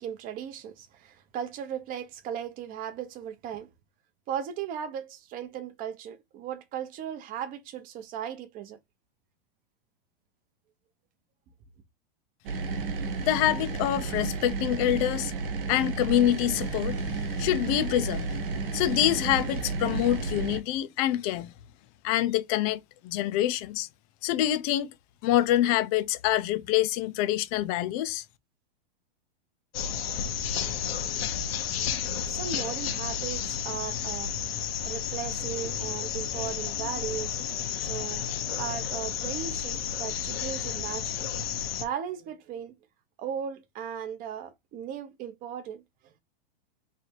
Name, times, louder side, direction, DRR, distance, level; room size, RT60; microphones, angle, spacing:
voice 1, 0.0-3.7 4.3-8.8 32.3-37.4 37.8-41.3 41.8-42.7 43.2-46.2, right 8 dB, 30° right, 0.8 m, -37 dB
sound 1, 12.4-20.6, right 4 dB, 65° right, 1.1 m, -32 dB
voice 2, 13.2-15.3 15.7-18.4 18.7-21.5 22.0-23.9 24.2-24.9 25.2-28.2, left 13 dB, 40° left, 0.6 m, -26 dB
sound 2, 29.7-41.9, left 8 dB, 80° left, 1.0 m, -32 dB
3.3 x 2.7 x 4.4 m
hypercardioid pair, 140°, 30 cm